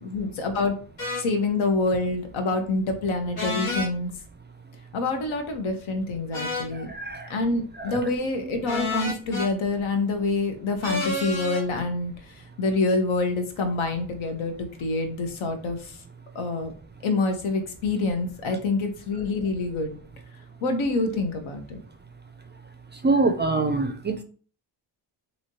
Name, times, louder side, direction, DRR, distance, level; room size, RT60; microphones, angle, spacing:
voice 1, 0.0-0.8 1.2-4.1 4.9-6.9 7.3-12.1 12.6-16.0 16.3-16.7 17.0-20.0 20.6-21.8, left 3 dB, 70° left, 5 dB, 0.9 m, -26 dB
sound 1, 1.0-1.2 3.3-3.9 6.3-6.7 8.6-9.5 10.8-11.6, left 2 dB, 90° left, 1.3 m, -29 dB
voice 2, 6.7-7.3 7.9-8.0 22.9-24.2, right 3 dB, 25° right, 7 dB, 0.4 m, -25 dB
3.1 x 2.8 x 2.7 m, 0.41 s
cardioid pair, 60°, 49 cm